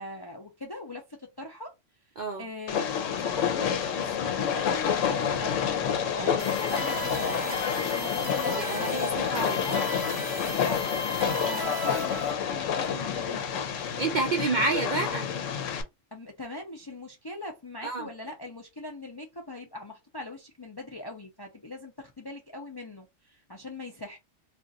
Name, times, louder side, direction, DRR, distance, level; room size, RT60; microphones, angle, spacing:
voice 1, 0.0-1.7 2.4-5.7 6.2-10.0 10.7-10.9 11.4-13.8 16.1-24.2, left 2 dB, 35° left, 0.4 m, -41 dB
Train, 2.7-15.8, left 8 dB, 80° left, 1.0 m, -29 dB
sound 1, 6.4-12.3, equal, 40° right, 0.9 m, -36 dB
voice 2, 8.5-9.6 14.0-15.3 17.8-18.1, right 3 dB, 60° right, 0.5 m, -29 dB
2.5 x 2.4 x 3.9 m
omnidirectional pair, 1.3 m